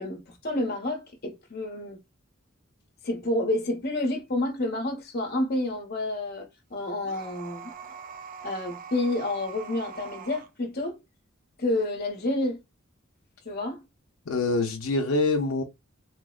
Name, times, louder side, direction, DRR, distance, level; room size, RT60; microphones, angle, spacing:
voice 1, 0.0-2.0 3.0-7.7 8.4-11.0 11.6-12.6 13.4-13.8, left 1 dB, 50° left, 1.0 m, -29 dB
sound 1, 7.0-10.5, right 6 dB, 40° right, 0.3 m, -43 dB
voice 2, 14.3-15.6, left 3 dB, 90° left, 0.7 m, -25 dB
3.9 x 2.0 x 2.3 m
head